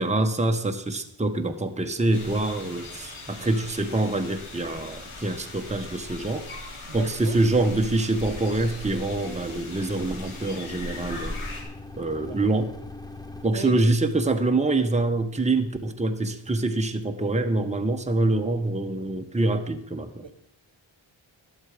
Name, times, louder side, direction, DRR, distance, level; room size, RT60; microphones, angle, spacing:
voice 1, 0.0-6.5 6.9-11.4 12.0-12.7 13.4-20.3, right 2 dB, 15° right, 5 dB, 1.0 m, -25 dB
sound 1, 2.1-11.6, left 2 dB, 85° left, 2.8 m, -39 dB
voice 2, 6.9-7.4 12.2-12.4 13.5-13.8, right 4 dB, 65° right, 10 dB, 1.2 m, -35 dB
sound 2, 8.1-13.5, left 2 dB, 10° left, 0.8 m, -43 dB
12.5 x 11.5 x 5.0 m, 0.73 s
wide cardioid pair, 90°, 49 cm